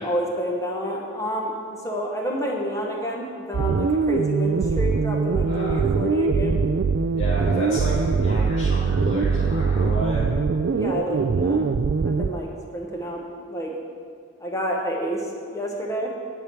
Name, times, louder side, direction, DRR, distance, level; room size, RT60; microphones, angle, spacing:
voice 1, 0.0-6.6 10.7-11.7 12.0-13.8 14.4-16.1, equal, 15° left, -1 dB, 1.0 m, -29 dB
sound 1, 3.5-12.3, right 4 dB, 55° right, 0.3 m, -22 dB
voice 2, 5.5-5.8 7.2-10.3, right 1 dB, 65° left, -10 dB, 2.2 m, -31 dB
10.5 x 4.7 x 8.1 m, 2.1 s
head